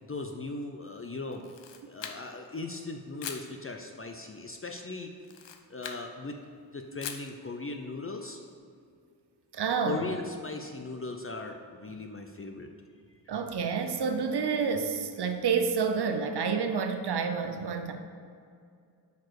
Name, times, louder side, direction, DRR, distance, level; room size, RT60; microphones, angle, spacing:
voice 1, 0.0-1.5 1.8-5.1 5.7-6.4 6.7-8.4 9.8-12.7, left 3 dB, 30° left, 4 dB, 0.7 m, -38 dB
Camera, 1.3-2.5 3.2-3.5 5.2-6.1 7.0-7.3, left 8 dB, 80° left, 0.7 m, -41 dB
voice 2, 9.5-10.1 13.3-17.9, right 5 dB, 65° right, 6 dB, 0.8 m, -29 dB
8.2 x 4.7 x 4.8 m, 2.3 s
cardioid pair, 45°, 43 cm